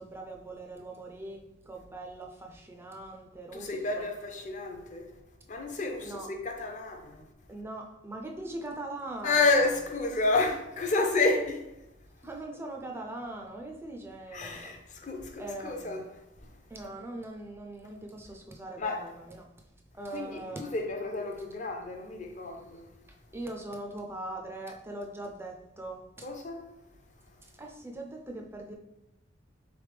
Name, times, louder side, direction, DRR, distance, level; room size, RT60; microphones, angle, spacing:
voice 1, 0.0-1.4 1.7-4.1 6.0-6.3 7.5-9.7 12.2-14.7 15.4-16.0 16.7-19.5 19.9-20.8 23.3-26.3 27.4-28.8, right 2 dB, 10° right, 0.4 m, -41 dB
voice 2, 3.5-5.1 5.5-7.2 9.2-11.7 14.3-16.0 16.4-16.5 18.8-19.0 20.1-22.9 26.2-26.6, left 3 dB, 40° left, 0.5 m, -30 dB
3.8 x 3.3 x 3.3 m
head